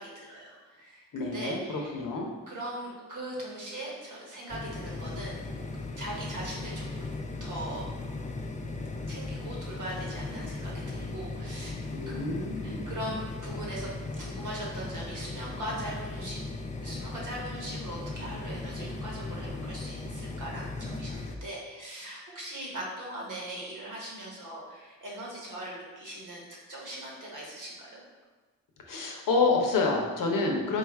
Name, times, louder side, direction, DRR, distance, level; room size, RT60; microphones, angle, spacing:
voice 1, 0.0-2.0 2.5-5.4 6.0-7.9 9.1-11.8 12.1-12.2 12.6-16.4 16.8-28.0, right 1 dB, 70° right, -4 dB, 1.3 m, -40 dB
voice 2, 1.1-2.3 11.9-12.9 28.9-30.8, left 3 dB, 80° left, 1 dB, 0.8 m, -28 dB
sound 1, 4.5-21.4, left 2 dB, 25° left, 0.4 m, -37 dB
3.7 x 2.4 x 4.5 m, 1.3 s
cardioid pair, 60°, 32 cm